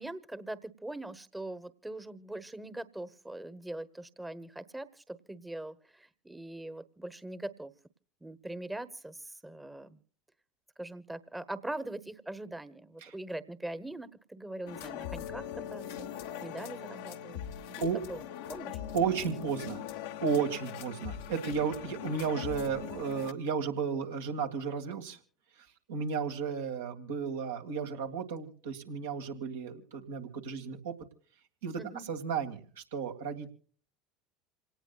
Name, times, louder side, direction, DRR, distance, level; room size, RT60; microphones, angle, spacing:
voice 1, 0.0-7.7 8.2-10.0 10.8-16.1 16.4-17.4 17.8-18.8 31.8-32.1, right 1 dB, 10° right, 14 dB, 1.1 m, -42 dB
sound 1, 14.7-23.3, left 9 dB, 70° left, 1.1 m, -41 dB
voice 2, 18.9-19.8 20.2-25.2 25.9-30.9 31.6-31.8 32.1-33.5, right 6 dB, 75° right, 3 dB, 1.9 m, -33 dB
27.5 x 18.5 x 2.4 m, 0.43 s
hypercardioid pair, 75°, 0 cm